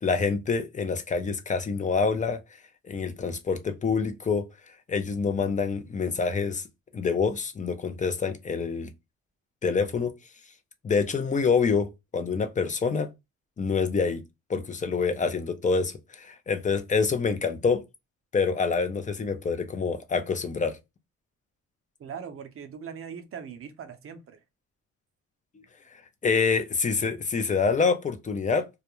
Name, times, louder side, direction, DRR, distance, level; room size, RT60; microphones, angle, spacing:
voice 1, 0.0-2.4 2.9-4.5 4.9-6.6 6.9-8.9 9.6-10.1 10.8-13.1 13.6-14.2 14.5-17.8 18.3-20.8 26.2-28.7, left 5 dB, 25° left, 0.5 m, -26 dB
voice 2, 22.0-24.4, right 7 dB, 45° right, 0.6 m, -40 dB
2.3 x 2.1 x 2.9 m
cardioid pair, 90°, 30 cm